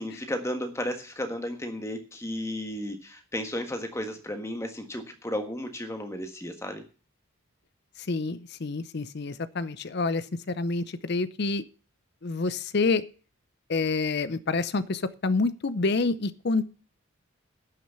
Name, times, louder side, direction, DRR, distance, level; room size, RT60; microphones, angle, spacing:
voice 1, 0.0-6.8, left 1 dB, 15° left, 6 dB, 1.5 m, -33 dB
voice 2, 8.0-11.6 12.2-13.0 13.7-16.6, left 3 dB, 50° left, 15 dB, 0.6 m, -28 dB
12.0 x 6.3 x 8.1 m, 0.37 s
head